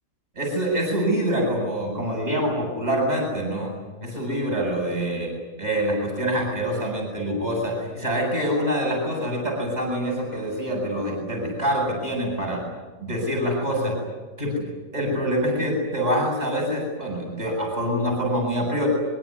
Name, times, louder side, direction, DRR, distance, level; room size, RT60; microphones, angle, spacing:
voice 1, 0.3-3.7 4.0-5.3 5.6-12.6 13.0-14.0 14.4-14.7 14.9-18.9, equal, 30° right, -1 dB, 8.3 m, -25 dB
25.0 x 23.5 x 9.9 m, 1.2 s
omnidirectional pair, 1.4 m